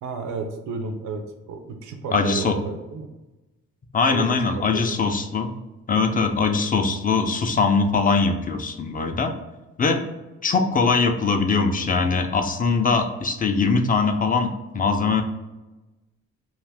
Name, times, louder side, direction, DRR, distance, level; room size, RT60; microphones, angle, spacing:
voice 1, 0.0-3.1 4.1-4.8 6.5-6.6, right 4 dB, 75° right, 5 dB, 0.5 m, -32 dB
voice 2, 2.1-2.6 3.9-5.5 5.9-9.3 9.8-10.0 10.4-15.2, left 4 dB, 30° left, 6 dB, 0.5 m, -21 dB
2.5 x 2.4 x 3.4 m, 1.1 s
cardioid pair, 70°, 29 cm